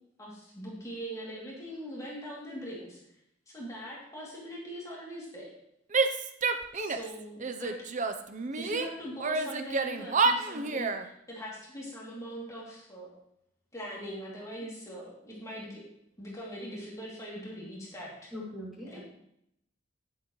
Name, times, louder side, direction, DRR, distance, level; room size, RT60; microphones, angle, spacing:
voice 1, 0.2-3.0 3.5-5.5 6.7-7.8 8.6-13.1 13.7-15.8 16.2-18.3 18.9-19.0, equal, 15° left, -5 dB, 2.7 m, -41 dB
Female speech woman speaking / Yell, 5.9-7.1 7.4-8.9 9.2-11.0, right 4 dB, 40° right, 0.7 m, -29 dB
voice 2, 18.3-19.0, left 1 dB, ahead, -7 dB, 2.6 m, -41 dB
11.5 x 9.7 x 3.1 m, 0.76 s
head